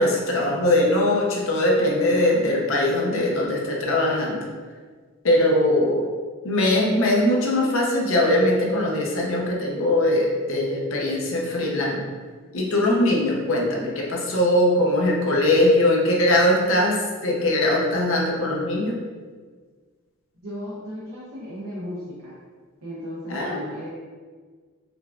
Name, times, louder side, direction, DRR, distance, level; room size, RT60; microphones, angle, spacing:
voice 1, 0.0-4.4 5.2-6.0 6.4-12.0 12.5-19.0 23.3-23.6, left 1 dB, 65° left, -2 dB, 0.7 m, -21 dB
voice 2, 20.4-22.4 22.8-23.9, left 1 dB, 85° right, -7 dB, 0.8 m, -35 dB
4.9 x 2.4 x 2.4 m, 1.5 s
head